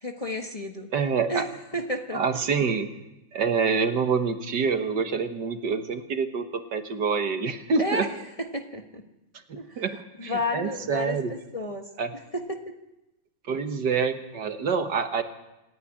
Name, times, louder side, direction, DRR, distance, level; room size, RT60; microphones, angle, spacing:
voice 1, 0.0-0.9 1.3-1.4 1.7-2.2 7.8-8.1 8.4-9.0 9.5-9.8 10.2-11.2 11.5-11.8 12.3-12.7, left 1 dB, 20° left, 3 dB, 1.4 m, -31 dB
voice 2, 0.9-1.5 2.1-2.9 3.3-8.1 9.5-9.9 10.2-11.3 12.0-12.1 13.5-15.2, right 5 dB, 70° right, 7 dB, 2.0 m, -26 dB
27.0 x 10.5 x 10.0 m, 0.94 s
omnidirectional pair, 2.0 m